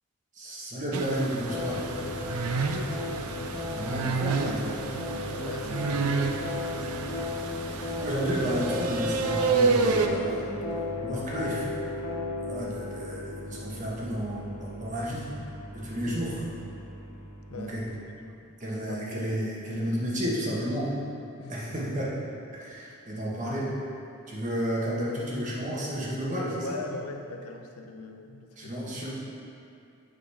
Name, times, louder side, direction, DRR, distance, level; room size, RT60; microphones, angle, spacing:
voice 1, 0.3-1.9 3.7-4.8 5.6-6.0 6.6-7.3 7.6-11.7 12.4-15.3 15.7-16.4 17.5-17.8 18.6-21.0 21.5-22.2 22.5-23.7 24.3-26.8 28.6-29.1, equal, 35° right, -5 dB, 1.3 m, -32 dB
sound 1, 0.9-10.1, right 4 dB, 85° right, 0.5 m, -29 dB
sound 2, 1.4-18.2, left 2 dB, 70° left, 1.1 m, -36 dB
voice 2, 2.0-3.4 5.4-6.0 16.1-16.2 17.2-17.8 18.3-18.6 18.9-19.2 21.4-21.9 26.6-29.1, left 3 dB, 90° left, 5 dB, 0.6 m, -42 dB
8.3 x 4.0 x 4.8 m, 2.5 s
head